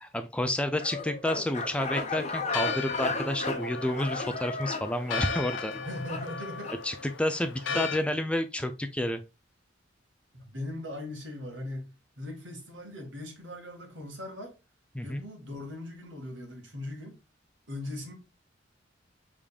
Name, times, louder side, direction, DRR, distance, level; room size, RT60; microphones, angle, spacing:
voice 1, 0.0-5.7 6.8-9.2 14.9-15.2, left 1 dB, 5° left, 0.4 m, -30 dB
sound 1, 0.8-6.8, left 3 dB, 35° left, 0.8 m, -35 dB
Church bell, 1.6-8.0, left 5 dB, 80° left, 0.5 m, -37 dB
voice 2, 5.7-6.7 7.7-7.9 10.3-11.9 12.2-14.6 15.0-17.2 17.7-18.1, left 1 dB, 80° right, 1.9 m, -39 dB
5.0 x 3.6 x 2.3 m
head